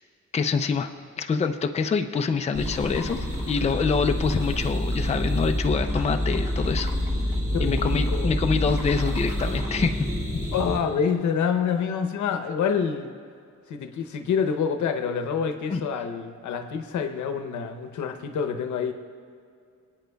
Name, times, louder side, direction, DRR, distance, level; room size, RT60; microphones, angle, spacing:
voice 1, 0.3-0.9 1.2-6.9 7.6-10.0 15.7-15.8, left 5 dB, 25° left, 6 dB, 0.5 m, -25 dB
sound 1, 2.5-10.8, equal, 15° right, 2.3 m, -27 dB
voice 2, 7.5-8.3 10.5-13.1 13.7-18.9, left 6 dB, 85° left, 7 dB, 0.8 m, -27 dB
25.5 x 9.0 x 2.3 m, 2.3 s
cardioid pair, 125°, 29 cm